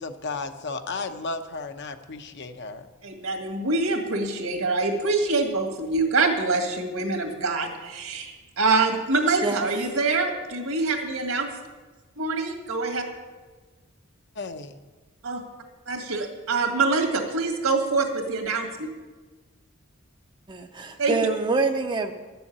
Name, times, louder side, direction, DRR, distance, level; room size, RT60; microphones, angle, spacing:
voice 1, 0.0-2.9 14.3-14.8, left 3 dB, 55° left, 8 dB, 0.8 m, -34 dB
voice 2, 3.0-11.5 12.2-13.0 15.2-15.4 15.9-18.7 21.0-21.1, right 3 dB, 75° right, 3 dB, 2.0 m, -25 dB
voice 3, 20.5-22.1, right 3 dB, 20° right, 5 dB, 0.6 m, -25 dB
12.0 x 7.0 x 8.6 m, 1.3 s
head